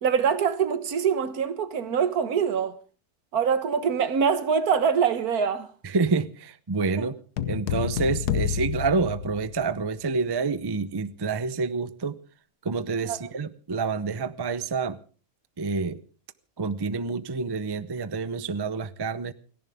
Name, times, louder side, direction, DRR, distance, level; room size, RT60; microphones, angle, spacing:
voice 1, 0.0-2.7 3.3-5.7 7.0-7.1 13.0-13.2, right 7 dB, 70° right, 1.6 m, -24 dB
voice 2, 5.8-7.1 7.5-12.2 12.6-15.0 15.6-16.0 16.6-19.3, right 4 dB, 40° right, 0.3 m, -28 dB
sound 1, 7.4-9.9, left 9 dB, 80° left, 1.5 m, -29 dB
29.5 x 11.0 x 3.5 m
omnidirectional pair, 1.7 m